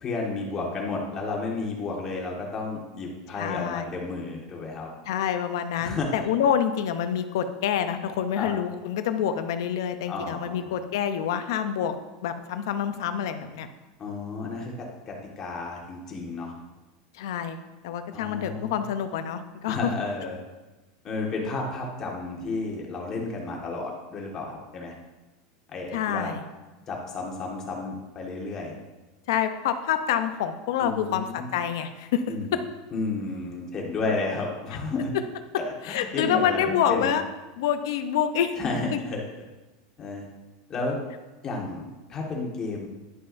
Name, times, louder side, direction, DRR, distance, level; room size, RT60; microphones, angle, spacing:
voice 1, 0.0-4.9 5.8-6.2 8.4-8.5 10.1-10.7 14.0-16.5 18.1-18.8 19.7-20.4 21.0-24.9 25.7-26.3 26.9-28.7 30.8-31.5 32.3-32.6 32.9-35.1 35.6-37.1 38.6-39.2 40.0-40.3 40.7-41.0 41.4-42.9, left 3 dB, 25° left, -1 dB, 1.5 m, -32 dB
voice 2, 3.4-3.9 5.1-12.0 12.2-13.7 17.1-17.6 17.8-19.9 25.9-26.4 29.3-32.2 32.5-32.6 35.8-37.2 37.6-38.6, left 9 dB, 75° left, 8 dB, 0.6 m, -27 dB
11.0 x 5.6 x 2.6 m, 1.1 s
supercardioid pair, 160°, 2 cm